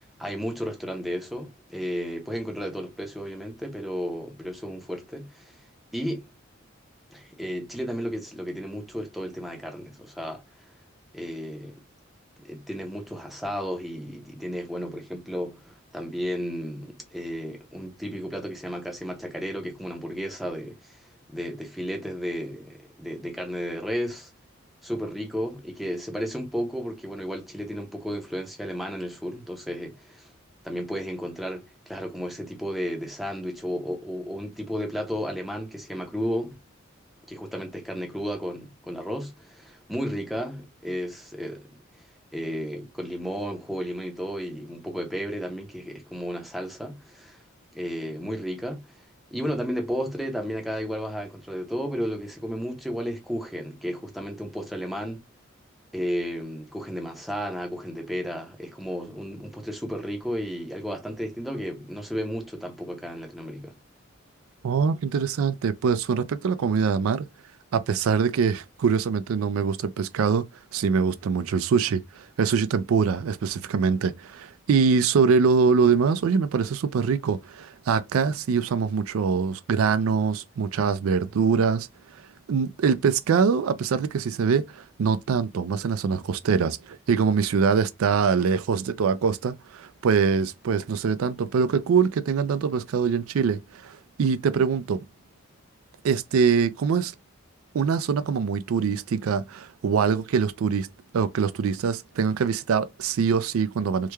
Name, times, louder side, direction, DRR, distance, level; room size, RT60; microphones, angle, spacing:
voice 1, 0.2-5.6 5.9-6.2 7.1-10.7 11.1-11.8 12.4-24.3 24.8-30.3 30.6-36.6 37.3-41.7 41.9-42.1 42.3-47.4 47.7-49.0 49.3-55.2 55.9-63.8, equal, ahead, 0.6 m, -33 dB
voice 2, 64.6-67.3 67.7-70.4 70.7-81.9 82.5-95.0 96.0-97.1 97.7-100.9 101.1-104.1, right 6 dB, 85° right, 0.4 m, -23 dB
3.1 x 2.2 x 3.3 m
head